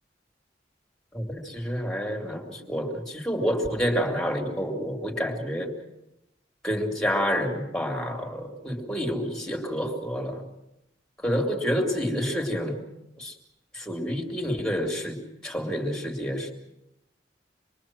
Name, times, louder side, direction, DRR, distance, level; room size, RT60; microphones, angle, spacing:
voice 1, 1.1-5.7 6.6-10.4 11.2-12.8 13.2-13.3 13.7-16.5, equal, 5° left, 2 dB, 2.8 m, -28 dB
26.0 x 22.5 x 6.1 m, 0.86 s
head